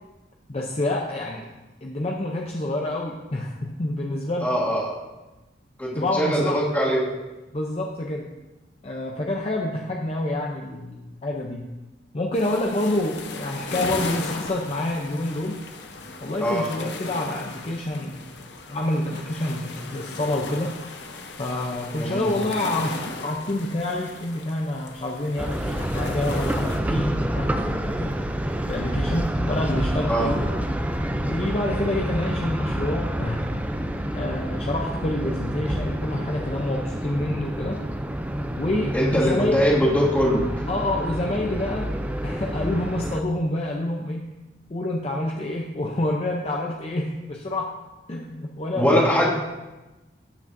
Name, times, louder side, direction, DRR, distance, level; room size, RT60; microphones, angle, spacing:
voice 1, 0.5-1.5 1.8-4.5 6.0-6.6 7.5-8.3 8.8-11.6 12.1-15.6 16.2-18.3 18.7-20.7 21.4-28.1 28.7-30.4 31.3-33.5 34.1-37.8 38.5-39.6 40.7-41.9 42.2-44.3 44.7-47.7 48.1-49.3, left 1 dB, 35° left, -1 dB, 0.6 m, -27 dB
voice 2, 4.4-4.9 5.8-7.0 16.4-16.6 22.0-22.3 30.1-30.3 38.9-40.4 48.8-49.3, equal, 10° left, -6 dB, 2.1 m, -22 dB
sound 1, 12.3-26.8, left 3 dB, 75° left, 0.8 m, -37 dB
sound 2, 25.4-43.2, right 1 dB, 10° right, 0.4 m, -28 dB
12.5 x 5.9 x 2.6 m, 1.1 s
head